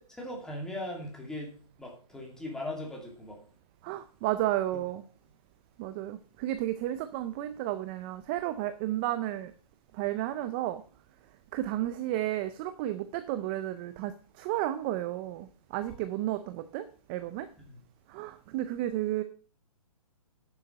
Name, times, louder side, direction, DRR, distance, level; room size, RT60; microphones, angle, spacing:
voice 1, 0.1-3.4 4.7-4.8 17.7-17.8, left 1 dB, 5° left, -1 dB, 2.5 m, -39 dB
voice 2, 3.8-5.0 5.8-9.5 9.9-10.8 11.5-17.5 18.1-19.2, right 14 dB, 20° right, 11 dB, 0.4 m, -32 dB
11.0 x 7.0 x 5.3 m, 0.39 s
hypercardioid pair, 150°, 19 cm